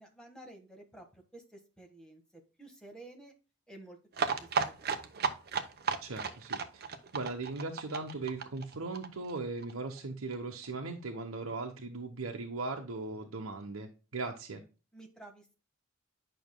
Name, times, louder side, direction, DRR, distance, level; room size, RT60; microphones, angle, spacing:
voice 1, 0.0-3.3 3.7-4.7 5.3-5.4 14.9-15.5, right 2 dB, 5° left, 2 dB, 1.5 m, -52 dB
sound 1, 4.1-9.7 10.0-10.1 10.3-10.4 10.6-10.7, right 5 dB, 50° right, 0.8 m, -34 dB
voice 2, 6.0-6.8 7.1-14.6, right 3 dB, 90° right, 2 dB, 0.9 m, -38 dB
9.2 x 5.8 x 2.2 m, 0.32 s
head